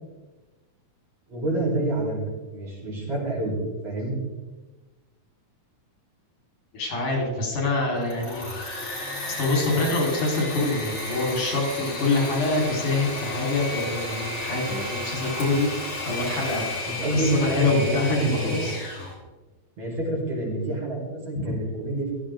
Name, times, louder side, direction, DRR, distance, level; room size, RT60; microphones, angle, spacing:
voice 1, 1.3-3.5 3.8-4.1 16.9-18.6 19.8-22.1, right 2 dB, 55° right, -4 dB, 5.7 m, -27 dB
voice 2, 6.7-8.4 9.2-15.8 16.1-16.7 17.1-18.8 21.4-21.6, left 2 dB, 80° left, -1 dB, 5.7 m, -25 dB
Engine / Mechanisms, 7.9-19.1, left 2 dB, 45° left, 5.0 m, -33 dB
16.0 x 14.0 x 3.8 m, 1.2 s
omnidirectional pair, 3.5 m